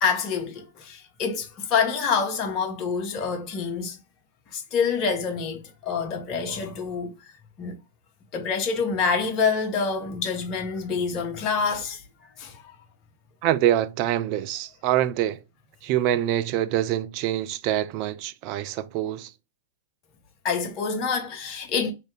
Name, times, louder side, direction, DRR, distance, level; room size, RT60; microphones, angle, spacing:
voice 1, 0.0-4.0 4.5-7.2 7.6-7.8 8.3-12.0 12.4-12.6 20.4-21.9, left 5 dB, 35° left, 0.8 m, -26 dB
voice 2, 13.4-15.4 15.8-19.3, right 12 dB, 40° right, 0.3 m, -25 dB
2.6 x 2.5 x 3.2 m
figure-of-eight pair, 100°, 0 cm